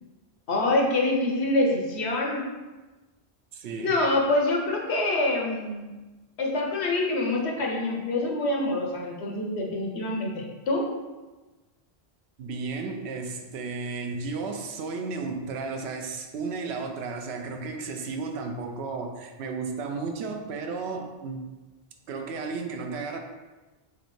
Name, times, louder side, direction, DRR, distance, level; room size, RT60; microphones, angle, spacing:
voice 1, 0.5-2.4 3.8-5.9 6.4-10.9, left 2 dB, 80° left, 0 dB, 1.1 m, -26 dB
voice 2, 3.5-4.0 12.4-21.5 22.1-23.2, right 4 dB, 80° right, 4 dB, 0.9 m, -33 dB
4.9 x 3.3 x 3.1 m, 1.2 s
omnidirectional pair, 1.1 m